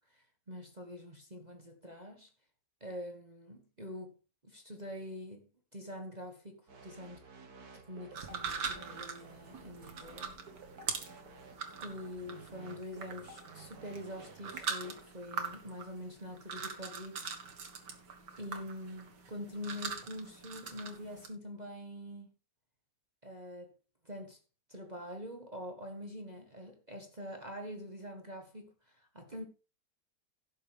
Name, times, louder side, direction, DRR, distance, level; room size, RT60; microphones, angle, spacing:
voice 1, 0.1-2.3 2.8-4.1 4.4-7.2 7.7-10.4 11.8-17.3 17.6-17.8 18.4-22.3 23.2-23.7 24.0-24.4 24.7-29.4, left 1 dB, 25° right, 1.4 m, -45 dB
sound 1, 6.7-14.6, right 4 dB, 60° right, 2.0 m, -54 dB
sound 2, 8.1-21.3, right 5 dB, 75° right, 2.2 m, -43 dB
16.5 x 6.7 x 3.5 m
omnidirectional pair, 1.8 m